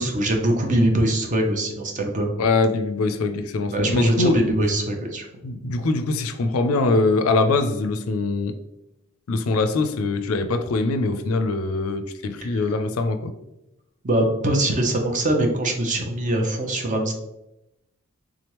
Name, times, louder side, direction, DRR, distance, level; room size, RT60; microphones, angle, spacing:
voice 1, 0.0-2.3 3.7-5.3 12.4-12.6 14.0-17.1, right 1 dB, 35° right, 3 dB, 0.7 m, -22 dB
voice 2, 2.4-4.5 5.4-8.5 9.3-13.3, left 3 dB, 80° left, 8 dB, 0.4 m, -23 dB
3.6 x 3.3 x 3.0 m, 0.89 s
head